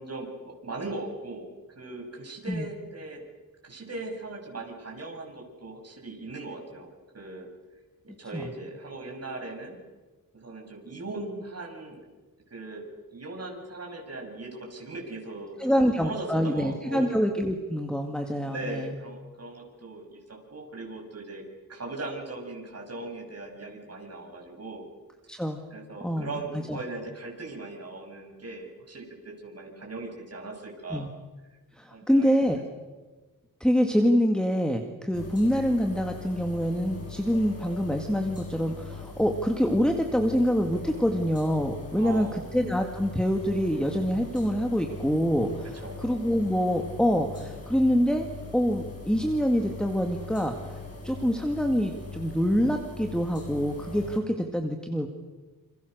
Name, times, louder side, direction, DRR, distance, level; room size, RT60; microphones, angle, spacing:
voice 1, 0.0-1.5 1.8-3.2 3.6-7.5 8.0-9.8 10.3-12.0 12.5-12.9 13.1-17.2 18.4-21.4 21.7-24.9 25.7-31.1 31.5-31.6 31.9-32.3 42.0-42.6 45.7-46.0, right 2 dB, 45° right, 0 dB, 7.1 m, -39 dB
voice 2, 15.6-18.9 25.3-25.6 26.0-26.4 26.7-26.8 30.9-31.1 31.7-32.6 33.6-48.3 48.5-50.8 51.0-55.1, equal, ahead, 4 dB, 2.0 m, -26 dB
sound 1, 35.1-54.2, left 3 dB, 40° left, 6.9 m, -41 dB
28.5 x 27.5 x 6.7 m, 1.3 s
wide cardioid pair, 155°, 35 cm